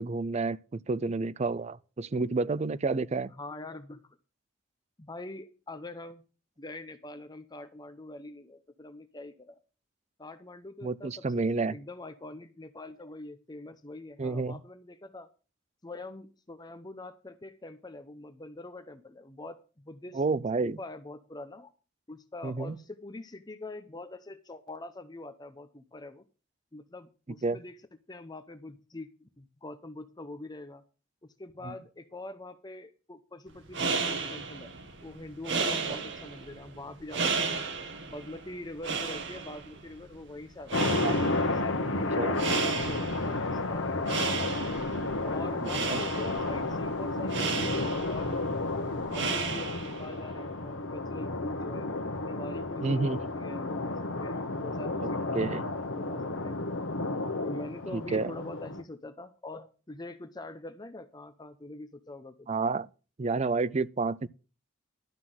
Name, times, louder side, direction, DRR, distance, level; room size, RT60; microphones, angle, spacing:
voice 1, 0.0-3.3 10.8-11.7 14.2-14.6 20.1-20.8 22.4-22.8 27.4-27.6 31.6-31.7 40.9-41.2 42.2-42.4 45.6-46.0 52.8-53.2 55.0-55.6 57.9-58.3 62.5-62.9 63.2-64.3, right 3 dB, 35° right, 0.5 m, -30 dB
voice 2, 3.4-4.0 5.0-6.2 6.6-9.6 10.2-11.4 11.7-15.3 15.8-20.2 20.6-21.7 22.1-26.2 26.7-27.8 28.1-30.8 31.2-34.7 35.0-37.7 38.0-41.0 41.4-44.4 45.2-48.6 49.1-51.9 52.2-55.6 56.0-56.6 57.4-62.5, left 2 dB, 20° left, 0.7 m, -44 dB
sound 1, 33.5-50.2, right 4 dB, 65° right, 2.0 m, -34 dB
sound 2, 40.7-58.8, left 2 dB, 75° left, 1.2 m, -32 dB
12.0 x 5.8 x 7.7 m
head